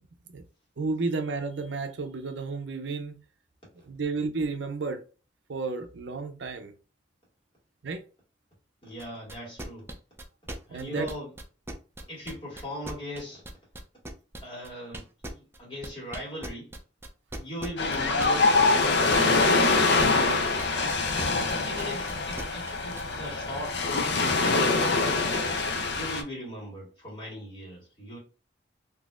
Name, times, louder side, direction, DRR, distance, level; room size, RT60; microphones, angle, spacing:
voice 1, 0.8-3.2 3.9-5.0 5.5-6.7 7.8-8.0 10.7-11.1, right 3 dB, 70° right, 0.5 m, -32 dB
voice 2, 8.8-9.9 10.7-11.3 12.1-13.4 14.4-16.7 17.4-19.6 21.6-25.2 25.9-28.2, equal, 30° left, 1.9 m, -39 dB
sound 1, 9.0-23.0, right 1 dB, 15° right, 0.5 m, -39 dB
Ocean, 17.8-26.2, left 3 dB, 65° left, 0.6 m, -24 dB
3.9 x 2.8 x 2.4 m
head